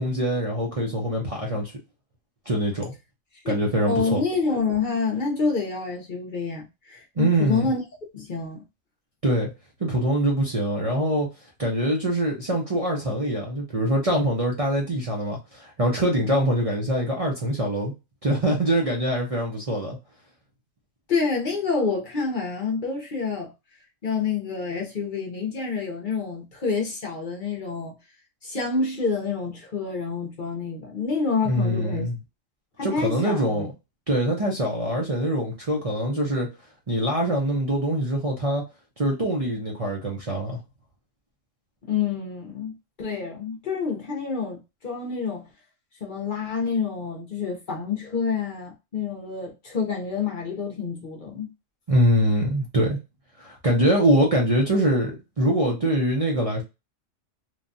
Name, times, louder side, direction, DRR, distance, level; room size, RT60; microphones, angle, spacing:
voice 1, 0.0-1.7 2.5-2.9 3.5-4.2 7.2-7.7 9.2-9.5 9.8-11.3 11.6-17.9 18.2-20.0 31.4-32.2 32.8-33.7 34.1-36.5 36.9-38.6 39.0-40.6 51.9-53.0 53.4-56.6, right 1 dB, 40° right, 0.5 m, -23 dB
voice 2, 3.9-7.8 8.1-8.6 21.1-23.5 24.0-28.0 28.4-32.1 32.8-33.7 41.9-42.7 43.0-45.5 46.0-51.5, left 4 dB, 45° left, 0.8 m, -28 dB
3.2 x 2.2 x 2.5 m
omnidirectional pair, 1.4 m